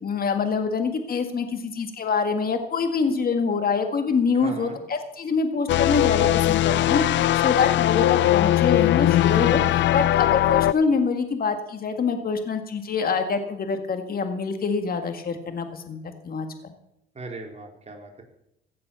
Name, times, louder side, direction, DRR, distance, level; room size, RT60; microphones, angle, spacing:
voice 1, 0.0-16.0 16.2-16.7, left 5 dB, 50° left, 7 dB, 1.8 m, -25 dB
voice 2, 4.3-4.8 17.1-18.2, right 3 dB, 35° right, 1 dB, 3.6 m, -38 dB
sound 1, 5.7-10.7, left 14 dB, 70° left, 0.4 m, -20 dB
16.0 x 7.7 x 6.9 m, 0.78 s
cardioid pair, 90°, 20 cm